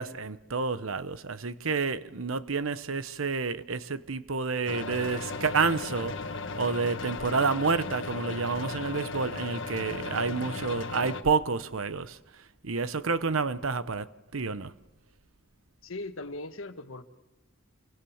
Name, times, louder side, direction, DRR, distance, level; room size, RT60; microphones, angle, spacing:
voice 1, 0.0-6.2 6.5-12.2 12.6-14.7, right 4 dB, 85° right, 1.0 m, -29 dB
sound 1, 4.7-11.2, left 4 dB, 65° left, 1.7 m, -36 dB
voice 2, 15.8-17.1, left 2 dB, 80° left, 1.6 m, -39 dB
28.0 x 24.5 x 7.2 m
head